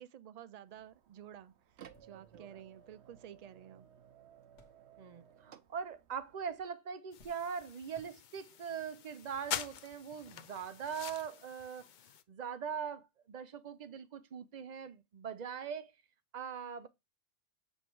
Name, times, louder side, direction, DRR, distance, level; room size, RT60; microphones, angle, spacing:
voice 1, 0.0-1.5 2.0-3.9, right 10 dB, 85° right, 0.3 m, -52 dB
sound 1, 0.7-6.7, right 9 dB, 65° right, 1.0 m, -59 dB
sound 2, 1.6-5.4 5.7-6.4 6.7-8.7 9.5-9.6 10.9-11.0, left 2 dB, 80° left, 1.7 m, -68 dB
voice 2, 5.0-11.9 12.3-15.9 16.3-16.9, right 7 dB, 45° right, 0.6 m, -41 dB
sound 3, 7.1-12.2, left 9 dB, 60° left, 0.5 m, -45 dB
8.0 x 3.3 x 4.5 m
omnidirectional pair, 1.2 m